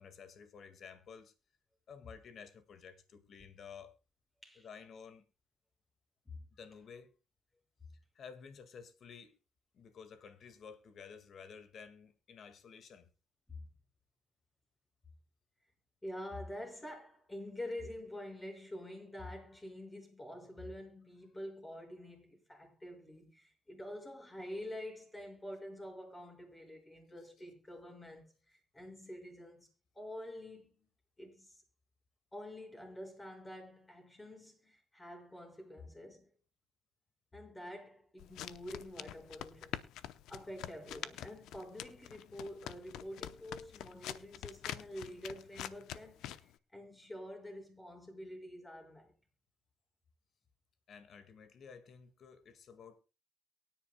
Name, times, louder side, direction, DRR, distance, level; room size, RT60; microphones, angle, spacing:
voice 1, 0.0-1.3 1.9-4.0 4.6-5.2 6.5-7.1 8.2-9.3 9.7-13.1 50.9-53.0, left 6 dB, 60° left, 1.8 m, -53 dB
voice 2, 16.0-29.7 29.9-30.7 31.2-31.6 32.3-36.3 37.3-39.9 40.3-49.1, left 1 dB, 20° left, 5.6 m, -47 dB
sound 1, 38.2-46.5, left 12 dB, 90° left, 0.7 m, -46 dB
23.0 x 10.0 x 2.2 m
cardioid pair, 90°, 0 cm